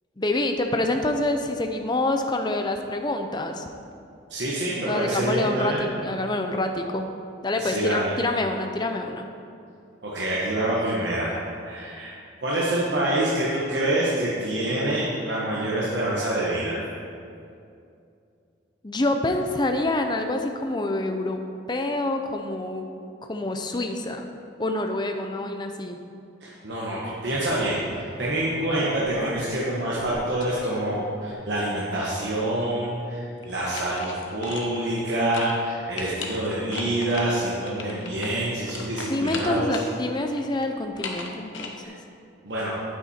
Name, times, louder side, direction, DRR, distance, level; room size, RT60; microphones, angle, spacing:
voice 1, 0.2-3.7 4.9-7.1 7.4-9.3 18.8-21.4 21.7-22.9 23.2-24.2 24.6-26.0 39.0-42.0, left 2 dB, 20° left, 5 dB, 0.6 m, -27 dB
voice 2, 4.3-5.8 7.6-8.2 10.0-12.1 12.4-16.8 26.4-39.7 41.8-41.9 42.4-42.7, right 1 dB, 65° right, -6 dB, 1.4 m, -26 dB
sound 1, 28.7-29.6 29.9-31.3 33.4-35.1 35.3-35.6 35.9-39.9 40.3-41.7, left 3 dB, 80° left, 1.1 m, -37 dB
9.4 x 8.9 x 4.4 m, 2.5 s
head